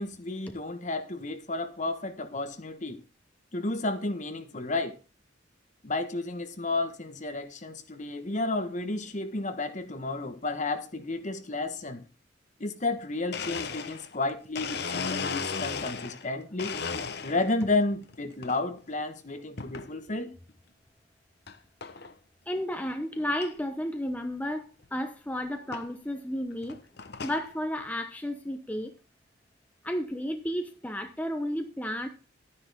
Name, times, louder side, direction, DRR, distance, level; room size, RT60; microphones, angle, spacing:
voice 1, 0.0-3.0 3.5-4.9 5.8-12.0 12.6-16.8 17.2-20.3, left 2 dB, 40° left, 1.4 m, -32 dB
Domestic sounds home sounds, 13.0-13.1 13.3-16.3 16.6-17.6 18.1-18.6 19.6-19.9 20.5-20.6 21.5-21.6 21.8-22.1 22.6-22.7 22.9-23.0 23.4-23.5 24.8-24.9 25.7-25.9 26.5-27.4, left 5 dB, 60° left, 1.0 m, -35 dB
voice 2, 22.5-26.8 27.2-28.9 29.8-32.1, equal, 10° left, 0.9 m, -32 dB
12.0 x 10.0 x 3.6 m
head